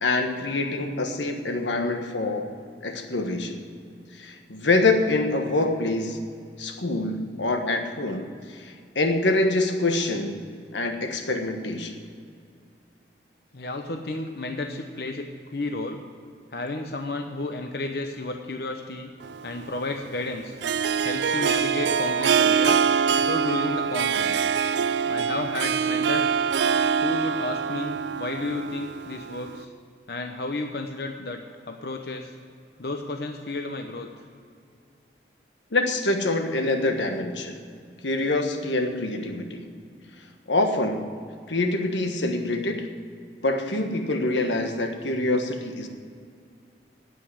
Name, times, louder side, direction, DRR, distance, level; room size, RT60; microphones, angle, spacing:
voice 1, 0.0-2.5 2.8-3.6 4.1-6.2 6.6-10.4 10.7-12.0 35.7-37.6 38.0-39.7 40.5-41.1 41.5-42.9 43.4-45.9, left 2 dB, 90° left, 5 dB, 1.4 m, -25 dB
voice 2, 13.5-16.0 16.5-19.1 19.4-20.5 21.0-24.5 25.1-26.3 27.0-29.7 30.1-32.3 32.8-34.1, left 2 dB, 60° left, 4 dB, 0.9 m, -32 dB
Harp, 19.2-29.6, right 6 dB, 75° right, 0.4 m, -24 dB
9.5 x 8.7 x 9.5 m, 2.2 s
head